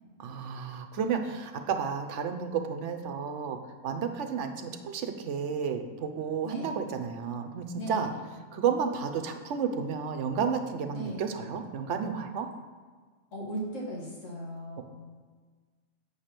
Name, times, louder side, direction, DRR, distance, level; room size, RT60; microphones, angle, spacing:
voice 1, 0.2-3.6 3.8-8.1 8.5-12.5, right 6 dB, 65° right, 6 dB, 1.0 m, -32 dB
voice 2, 7.8-8.1 10.9-11.2 13.3-14.8, right 1 dB, 70° left, -5 dB, 2.3 m, -37 dB
8.0 x 5.0 x 5.8 m, 1.5 s
omnidirectional pair, 1.4 m